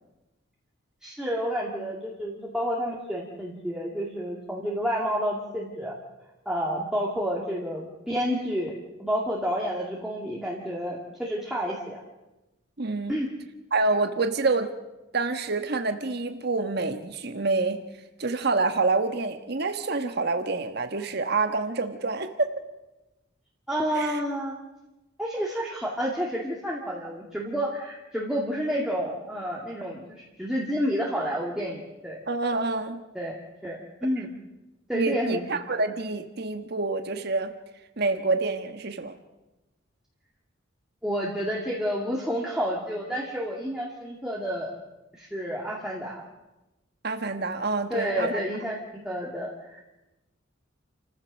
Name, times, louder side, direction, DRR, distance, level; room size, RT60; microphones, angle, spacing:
voice 1, 1.0-5.9 6.5-8.7 9.0-12.0 13.1-13.3 23.7-24.5 25.2-32.2 33.1-33.3 33.6-34.3 34.9-35.4 41.0-44.7 45.2-46.2 47.9-48.8 49.0-49.8, equal, 5° right, -4 dB, 2.2 m, -30 dB
voice 2, 12.8-13.2 13.7-14.7 15.1-17.8 18.2-22.6 24.0-24.2 32.3-33.0 34.9-37.5 38.0-39.1 47.0-48.4, right 3 dB, 55° right, 7 dB, 1.3 m, -27 dB
29.0 x 15.0 x 6.3 m, 1.0 s
head